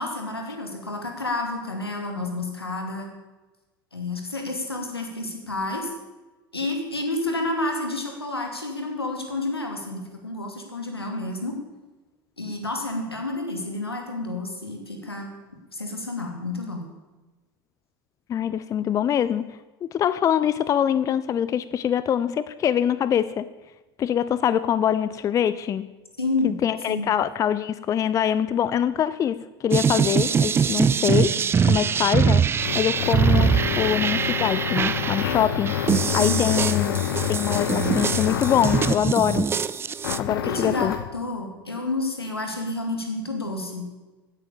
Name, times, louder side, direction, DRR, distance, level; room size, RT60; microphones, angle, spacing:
voice 1, 0.0-3.1 3.9-5.9 6.5-11.6 12.4-15.3 15.7-16.8 26.2-26.6 26.9-27.1 36.2-36.4 40.4-43.9, left 2 dB, 85° left, 3 dB, 2.6 m, -30 dB
voice 2, 18.3-19.4 19.8-23.5 24.0-25.9 26.4-31.4 31.6-39.5 40.2-40.9, left 9 dB, 25° left, 16 dB, 0.5 m, -24 dB
sound 1, 29.7-40.2, right 7 dB, 20° right, 0.5 m, -23 dB
sound 2, 31.9-39.1 40.0-41.1, left 10 dB, 65° left, 0.9 m, -28 dB
16.0 x 9.0 x 6.9 m, 1.2 s
figure-of-eight pair, 80°, 13 cm